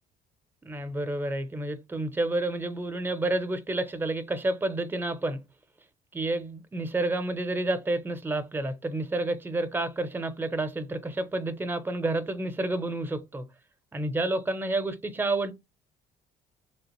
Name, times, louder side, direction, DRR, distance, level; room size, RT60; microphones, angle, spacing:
voice 1, 0.6-5.4 6.1-13.5 13.9-15.5, right 2 dB, 10° right, 0.5 m, -29 dB
3.2 x 2.5 x 2.9 m
cardioid pair, 110°, 17 cm